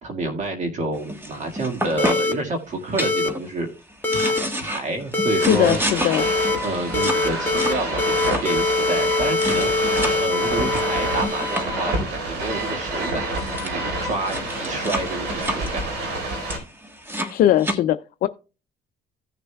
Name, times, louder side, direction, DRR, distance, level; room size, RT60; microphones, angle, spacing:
voice 1, 0.0-3.7 4.1-5.8 6.6-15.8, right 2 dB, 45° right, 1.8 m, -29 dB
sound 1, 1.0-2.4 2.9-3.5 3.9-10.2 10.7-12.0 13.0-13.1 13.2-13.7 14.1-17.8, equal, 15° right, 1.4 m, -30 dB
sound 2, 2.0-2.3 3.0-3.3 4.0-4.4 5.1-5.5 6.2-6.6 6.9-7.7 8.0-11.7, left 3 dB, 10° left, 1.4 m, -23 dB
sound 3, 5.4-16.6, right 1 dB, 90° right, 4.3 m, -28 dB
voice 2, 5.5-6.3 17.3-18.3, left 12 dB, 60° left, 0.4 m, -20 dB
16.0 x 6.6 x 2.3 m
cardioid pair, 110°, 17 cm